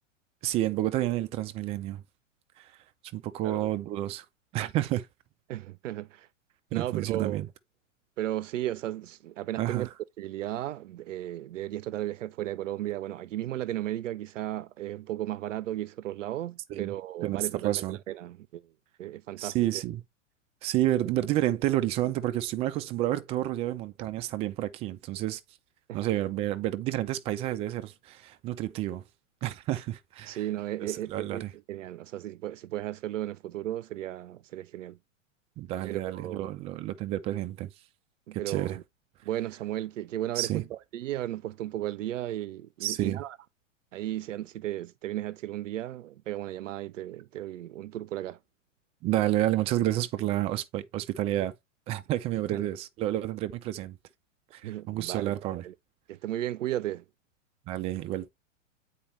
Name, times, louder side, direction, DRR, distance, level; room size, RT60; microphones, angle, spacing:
voice 1, 0.4-2.0 2.6-2.7 3.1-4.2 4.5-5.1 6.8-7.5 9.6-9.9 16.7-16.9 17.2-18.0 19.4-20.0 20.6-25.4 25.9-29.0 29.4-30.4 30.8-31.5 35.6-37.7 38.5-38.8 40.4-40.6 42.8-43.2 49.0-51.5 51.9-54.0 54.5-55.7 57.7-58.3, right 14 dB, 15° right, 0.3 m, -30 dB
voice 2, 5.5-6.3 6.7-7.4 8.2-9.9 10.2-18.6 19.0-19.6 25.9-26.0 30.3-35.0 35.8-36.5 38.3-38.8 39.3-43.4 43.9-48.4 52.5-52.7 54.6-55.7 56.1-57.0, right 13 dB, 70° right, 0.6 m, -35 dB
8.5 x 4.4 x 3.1 m
hypercardioid pair, 105°, 38 cm